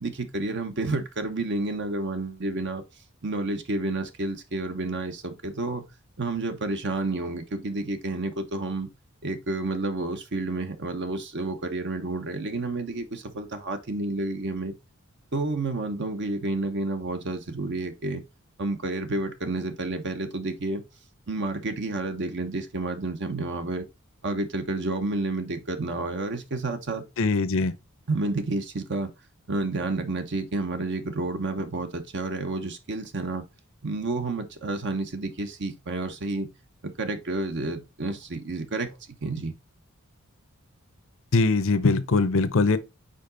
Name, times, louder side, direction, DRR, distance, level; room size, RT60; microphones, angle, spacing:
voice 1, 0.0-2.8 3.2-5.8 6.2-8.9 9.2-14.7 15.3-18.2 18.6-20.8 21.3-23.8 24.2-27.0 28.1-29.1 29.5-33.4 33.8-36.5 37.0-39.0 39.2-39.5, right 2 dB, 55° right, 1.0 m, -30 dB
voice 2, 27.2-27.7 41.3-42.8, left 3 dB, 65° left, 0.7 m, -22 dB
5.1 x 4.9 x 3.9 m
head